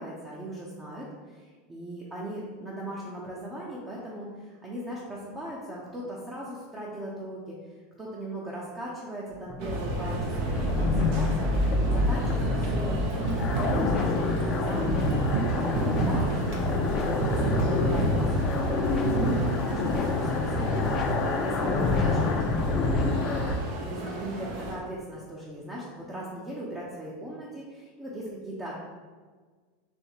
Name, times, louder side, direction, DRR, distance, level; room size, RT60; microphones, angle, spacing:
voice 1, 0.0-7.6 8.0-14.1 14.4-16.3 16.6-22.2 23.2-28.7, right 1 dB, 20° right, -5 dB, 0.8 m, -39 dB
sound 1, 9.3-23.5, left 3 dB, 35° left, 0.5 m, -27 dB
sound 2, 9.6-24.8, right 2 dB, 60° right, 0.8 m, -31 dB
4.4 x 3.1 x 2.9 m, 1.5 s
hypercardioid pair, 90°, 0 cm